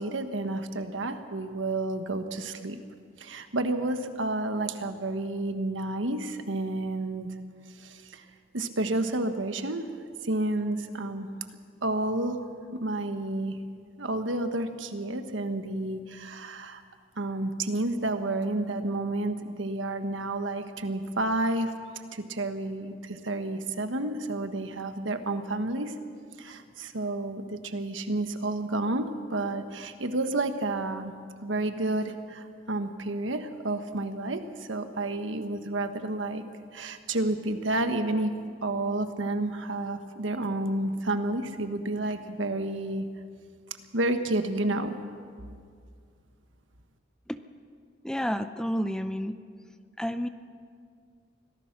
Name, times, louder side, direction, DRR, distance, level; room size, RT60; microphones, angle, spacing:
voice 1, 0.0-2.8 3.2-7.3 7.7-8.2 8.5-9.9 10.2-11.3 11.8-13.6 14.0-16.8 17.2-21.7 22.1-25.9 26.4-31.1 31.4-36.4 36.7-38.3 38.6-43.1 43.9-45.0, right 2 dB, 75° right, 8 dB, 1.4 m, -30 dB
voice 2, 48.0-49.4 50.0-50.3, equal, 5° left, 10 dB, 0.5 m, -30 dB
25.0 x 17.5 x 6.1 m, 2.2 s
head